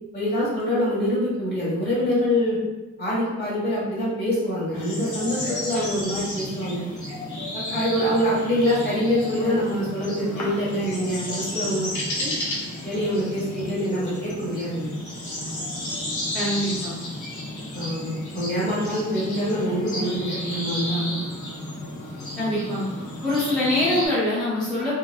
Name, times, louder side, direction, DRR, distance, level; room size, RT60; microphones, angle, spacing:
voice 1, 0.1-2.6 3.0-6.8 7.5-11.9 12.2-12.3 12.8-14.9 17.7-21.2, equal, 35° left, -7 dB, 1.5 m, -25 dB
sound 1, 4.7-24.1, left 1 dB, 80° left, 0.9 m, -32 dB
voice 2, 16.3-17.0 22.4-22.8 23.2-25.0, left 1 dB, 5° left, -11 dB, 0.9 m, -24 dB
3.5 x 3.0 x 2.3 m, 1.1 s
wide cardioid pair, 145°, 29 cm